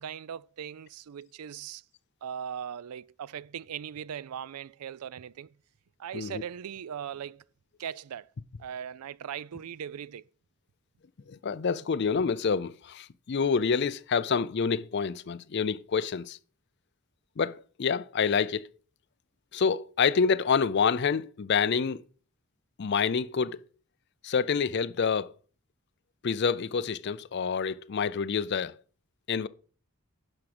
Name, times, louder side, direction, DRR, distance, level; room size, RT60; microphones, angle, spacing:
voice 1, 0.0-1.8 2.2-5.6 6.0-7.4 7.8-8.3 8.6-10.2, right 8 dB, 85° right, 0.4 m, -39 dB
voice 2, 11.3-16.4 17.4-18.7 19.5-22.0 22.8-23.6 24.2-25.3 26.2-28.8 29.3-29.5, left 6 dB, 50° left, 0.4 m, -27 dB
11.0 x 5.0 x 6.0 m
head